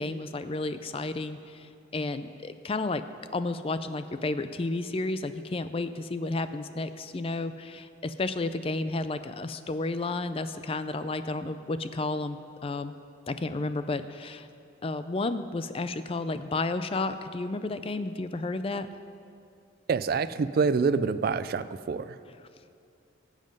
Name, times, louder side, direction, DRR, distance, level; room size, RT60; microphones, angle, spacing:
voice 1, 0.0-3.1 3.3-12.9 13.3-14.5 14.8-18.9 22.3-22.4, left 2 dB, 30° left, 11 dB, 0.4 m, -32 dB
voice 2, 19.9-22.1, right 5 dB, 50° right, 13 dB, 0.3 m, -26 dB
17.0 x 7.5 x 5.3 m, 2.5 s
head